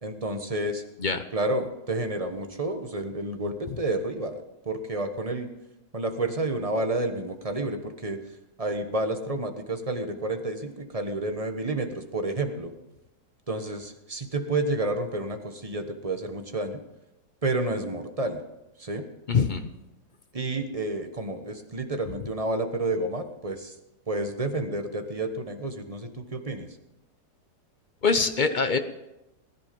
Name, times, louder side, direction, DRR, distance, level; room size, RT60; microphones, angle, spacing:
voice 1, 0.0-0.8 1.3-5.5 5.9-8.2 8.6-12.7 13.5-16.8 17.4-18.4 18.8-19.0 20.3-23.7 24.1-26.7, right 2 dB, 25° right, 6 dB, 1.1 m, -30 dB
voice 2, 19.3-19.7 28.0-28.8, left 4 dB, 45° left, 9 dB, 0.6 m, -23 dB
20.0 x 11.0 x 5.3 m, 0.93 s
omnidirectional pair, 1.9 m